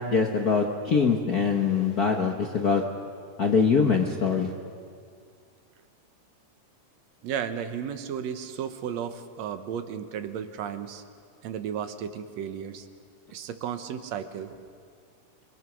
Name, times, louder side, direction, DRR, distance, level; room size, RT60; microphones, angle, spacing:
voice 1, 0.0-2.8 3.4-4.5, left 5 dB, 65° left, 2 dB, 0.9 m, -23 dB
voice 2, 7.2-11.0 11.4-12.9 13.3-14.6, right 8 dB, 65° right, 9 dB, 2.1 m, -34 dB
28.0 x 22.0 x 6.2 m, 2.2 s
omnidirectional pair, 3.6 m